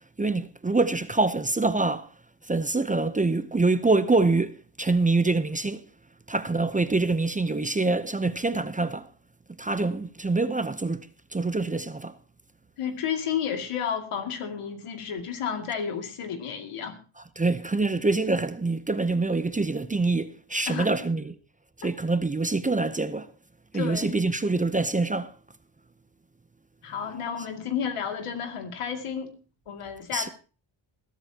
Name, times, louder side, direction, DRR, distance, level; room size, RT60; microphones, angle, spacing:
voice 1, 0.2-2.1 2.5-5.8 6.3-9.1 9.6-12.1 17.4-21.3 21.8-23.3 23.7-25.3 30.1-30.3, right 3 dB, 15° right, 0.7 m, -25 dB
voice 2, 12.8-17.0 20.7-20.9 21.8-21.9 23.7-24.2 26.8-29.3 29.7-30.3, left 7 dB, 85° left, 2.5 m, -31 dB
21.0 x 12.5 x 2.9 m
cardioid pair, 110°, 50 cm